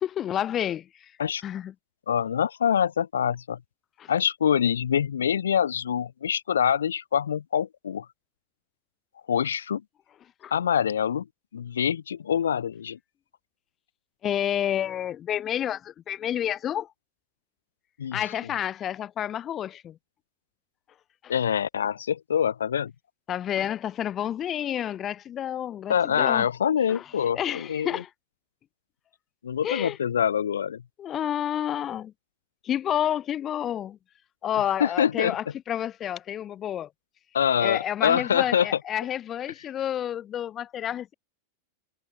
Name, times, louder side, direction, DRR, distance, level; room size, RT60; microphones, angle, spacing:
voice 1, 0.0-1.1 1.4-1.7 4.0-4.1 10.4-10.5 14.2-16.9 18.1-20.0 21.2-21.3 23.3-26.5 26.9-27.0 27.3-28.1 29.6-30.0 31.0-32.1 32.6-34.0 34.4-36.9 37.6-41.1, left 10 dB, 30° left, 0.6 m, -29 dB
voice 2, 2.1-3.6 4.1-8.1 9.3-9.8 10.5-11.3 11.5-13.0 18.0-18.2 21.3-22.9 25.9-28.0 29.4-30.8 34.8-35.4 37.3-38.8, left 8 dB, 65° left, 0.7 m, -25 dB
figure-of-eight pair, 90°, 0 cm